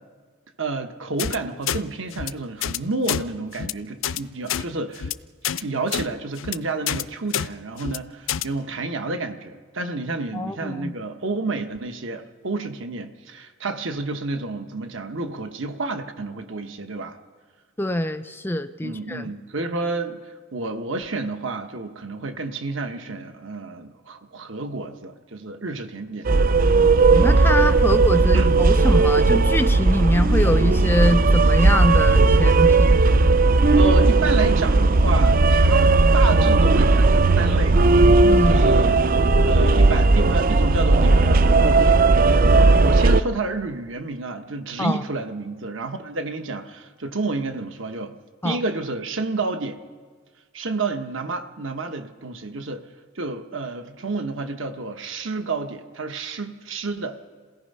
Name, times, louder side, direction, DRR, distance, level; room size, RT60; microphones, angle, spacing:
voice 1, 0.6-5.1 5.6-17.2 18.8-26.3 27.5-27.7 28.3-28.6 33.8-37.8 38.2-39.0 39.5-48.1 48.4-49.8 50.5-52.8 53.1-57.2, right 3 dB, 65° right, 7 dB, 1.2 m, -30 dB
sound 1, 1.2-1.4 1.7-1.8 2.1-2.3 2.6-2.8 3.0-3.2 3.5-3.7 4.0-4.2 4.5-4.6 4.9-5.1 5.4-5.6 5.9-6.0 6.4-6.6 6.9-7.0 7.3-7.5 7.8-8.0 8.3-8.4, left 9 dB, 65° left, 0.5 m, -27 dB
voice 2, 10.3-10.9 17.8-19.3 27.1-33.0 38.2-38.6 44.8-45.0 48.4-48.6, left 1 dB, 10° left, 10 dB, 0.5 m, -24 dB
sound 2, 26.2-43.2, right 3 dB, 40° right, 0.5 m, -16 dB
28.0 x 17.5 x 5.5 m, 1.5 s
head